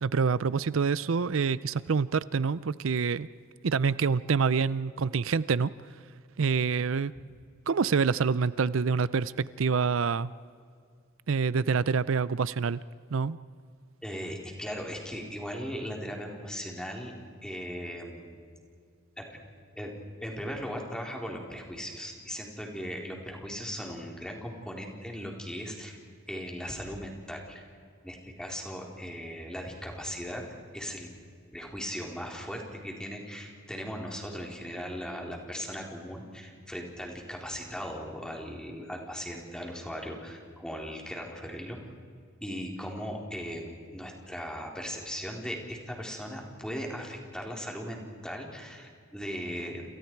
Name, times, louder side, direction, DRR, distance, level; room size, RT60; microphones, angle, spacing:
voice 1, 0.0-3.3 3.6-5.7 6.4-7.1 7.7-10.3 11.3-12.8 13.1-13.4, right 5 dB, 80° right, 17 dB, 0.5 m, -26 dB
voice 2, 14.0-17.1 17.4-18.3 19.2-19.3 19.8-19.9 20.2-26.0 26.3-27.7 28.0-30.4 30.7-31.1 31.5-41.8 42.4-49.8, equal, 5° left, 0 dB, 3.7 m, -38 dB
29.0 x 28.5 x 4.7 m, 2.2 s
head